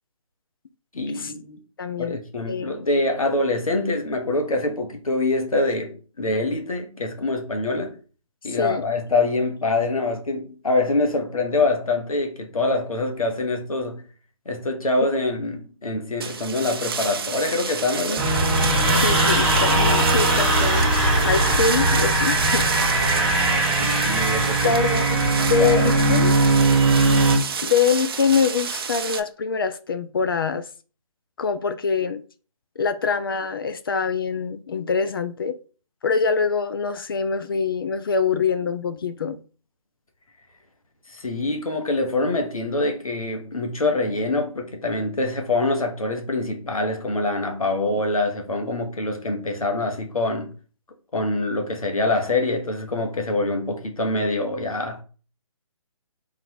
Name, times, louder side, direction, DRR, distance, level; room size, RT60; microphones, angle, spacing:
voice 1, 0.9-1.6 2.0-8.0 8.4-14.0 14.4-18.3 23.8-24.7 25.6-25.9 41.1-50.5 51.1-55.0, left 2 dB, 80° left, 1.2 m, -25 dB
voice 2, 1.8-2.2 2.5-2.7 8.5-8.9 18.9-20.9 21.2-23.0 24.6-26.3 27.6-30.7 31.4-32.2 32.8-35.6 36.0-39.4, left 5 dB, 40° left, 0.4 m, -24 dB
sound 1, 16.2-29.2, right 6 dB, 45° right, 0.5 m, -30 dB
sound 2, 18.2-27.4, right 2 dB, 25° right, 1.1 m, -20 dB
4.0 x 2.5 x 4.7 m
figure-of-eight pair, 145°, 18 cm